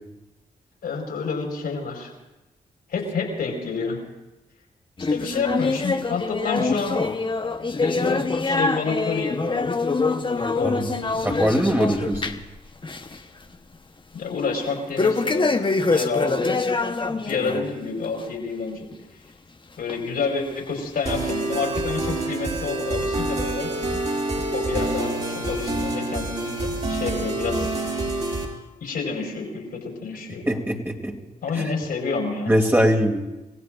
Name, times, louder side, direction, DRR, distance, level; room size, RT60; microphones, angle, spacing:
voice 1, 0.8-2.1 2.9-4.0 5.1-7.0 7.8-9.8 10.3-11.3 14.1-15.5 15.9-16.7 17.1-18.9 19.8-23.7 24.3-27.7 28.8-30.4 31.4-32.5, left 4 dB, 80° left, -1 dB, 4.8 m, -29 dB
sound 1, 5.0-12.5 12.8-13.2 13.5-13.6 15.0-17.6 18.0-18.2 18.9-19.0 19.9-20.0 20.8-20.9, left 3 dB, 30° left, 1.1 m, -24 dB
voice 2, 11.2-12.3 30.5-31.1 31.5-31.7 32.5-33.2, equal, 15° right, 1 dB, 2.6 m, -22 dB
sound 2, 21.1-28.4, right 2 dB, 45° right, 5.0 m, -27 dB
28.5 x 16.0 x 2.6 m, 1.0 s
cardioid pair, 55°, 16 cm